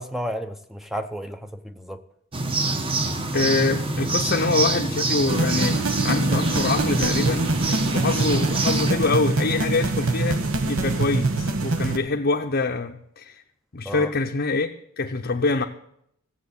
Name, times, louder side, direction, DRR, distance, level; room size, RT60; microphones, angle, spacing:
voice 1, 0.0-2.0 13.8-14.1, equal, ahead, 0.6 m, -32 dB
sound 1, 2.3-8.9, right 2 dB, 25° right, 1.0 m, -25 dB
voice 2, 3.3-7.5 7.9-13.4 13.7-14.7 15.0-15.6, left 3 dB, 50° left, 0.7 m, -25 dB
sound 2, 5.3-12.0, right 2 dB, 75° right, 1.3 m, -24 dB
15.0 x 7.6 x 8.4 m
head